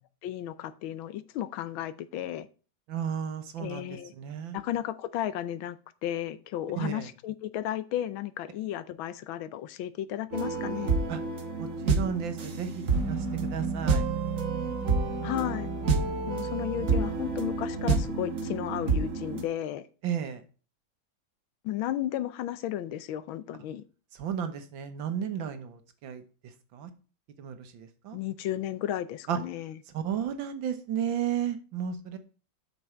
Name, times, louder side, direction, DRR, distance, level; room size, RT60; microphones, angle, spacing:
voice 1, 0.2-2.5 3.6-4.1 4.5-10.9 15.2-15.7 16.3-19.8 21.6-23.8 28.1-29.7, left 12 dB, 90° left, 14 dB, 1.5 m, -34 dB
voice 2, 2.9-4.6 6.8-7.1 11.1-11.2 11.6-14.1 20.0-20.4 24.1-26.9 27.4-28.2 29.3-29.4 29.9-32.2, right 8 dB, 75° right, 9 dB, 1.8 m, -33 dB
sound 1, 10.3-19.4, right 4 dB, 45° right, 1.3 m, -29 dB
8.1 x 6.1 x 4.4 m, 0.36 s
omnidirectional pair, 2.2 m